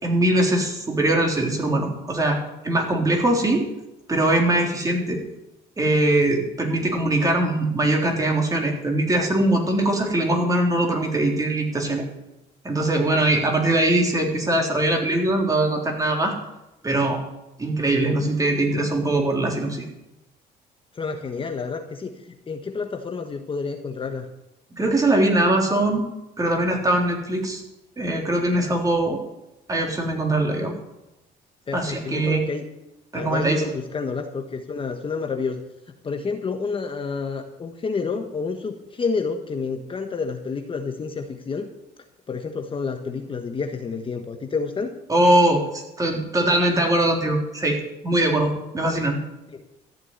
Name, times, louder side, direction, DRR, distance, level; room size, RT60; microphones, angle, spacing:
voice 1, 0.0-2.4 2.6-3.7 4.1-5.2 5.8-12.0 12.6-16.3 16.8-17.2 17.6-19.9 24.7-26.1 26.4-27.6 28.0-29.2 29.7-30.8 31.7-32.4 33.1-33.6 45.1-47.8 48.0-49.2, right 1 dB, 20° right, 1 dB, 3.6 m, -21 dB
voice 2, 20.9-24.3 31.7-32.7 33.1-35.6 36.0-41.7 42.3-44.9 49.5-49.6, left 4 dB, 30° left, 4 dB, 1.4 m, -29 dB
14.0 x 7.4 x 9.6 m, 0.92 s
cardioid pair, 110°, 17 cm